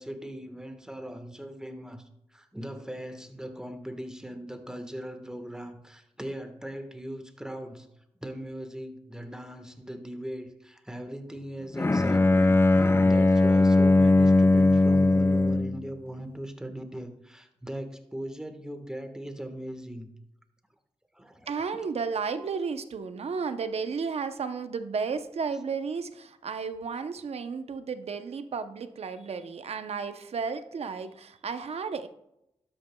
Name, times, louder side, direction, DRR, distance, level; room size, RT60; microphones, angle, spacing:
voice 1, 0.0-2.0 2.3-7.9 8.2-20.1 21.1-21.8, right 1 dB, 5° right, 6 dB, 1.3 m, -39 dB
Bowed string instrument, 11.8-15.8, left 2 dB, 20° left, 0.4 m, -20 dB
voice 2, 21.5-32.1, right 5 dB, 70° right, 10 dB, 0.7 m, -33 dB
12.5 x 8.6 x 2.3 m, 0.82 s
cardioid pair, 60°, 11 cm